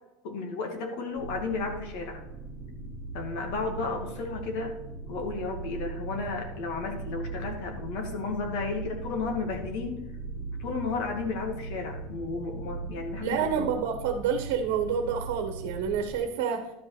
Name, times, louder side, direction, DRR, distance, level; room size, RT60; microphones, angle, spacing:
voice 1, 0.2-2.2 3.1-4.7 5.1-10.0 10.6-13.7, left 4 dB, 55° left, 3 dB, 2.3 m, -33 dB
sound 1, 1.1-16.2, right 3 dB, 15° left, 2.0 m, -39 dB
voice 2, 13.2-16.7, right 7 dB, 75° right, 6 dB, 1.3 m, -28 dB
12.0 x 5.4 x 5.0 m, 0.97 s
cardioid pair, 175°, 0 cm